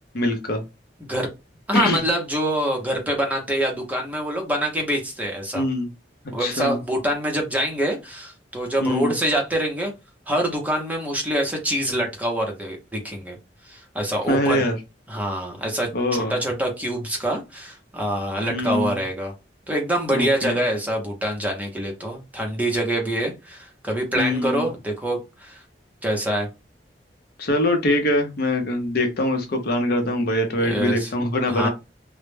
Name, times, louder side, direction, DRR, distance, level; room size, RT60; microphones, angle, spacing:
voice 1, 0.1-0.6 1.7-2.0 5.5-5.9 6.4-6.8 8.8-9.1 14.3-14.8 15.9-16.3 18.5-18.9 20.1-20.6 24.1-24.6 27.4-31.7, left 1 dB, 60° left, 5 dB, 0.6 m, -23 dB
voice 2, 1.7-5.6 6.3-9.9 10.3-13.4 13.7-14.6 15.1-19.3 19.7-25.6 26.0-26.5 30.6-31.1 31.5-31.7, right 1 dB, 10° right, 1 dB, 0.6 m, -25 dB
2.1 x 2.0 x 3.1 m, 0.25 s
head